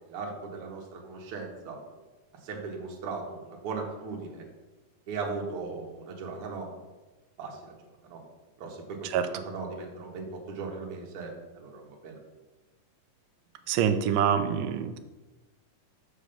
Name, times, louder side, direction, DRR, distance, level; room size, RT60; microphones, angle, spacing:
voice 1, 0.1-1.8 2.4-4.4 5.1-6.7 7.4-7.7 8.0-8.2 8.6-12.2, right 4 dB, 55° right, 0 dB, 2.0 m, -38 dB
voice 2, 13.7-15.0, right 8 dB, 90° right, 9 dB, 2.2 m, -26 dB
7.4 x 4.8 x 6.7 m, 1.2 s
omnidirectional pair, 3.7 m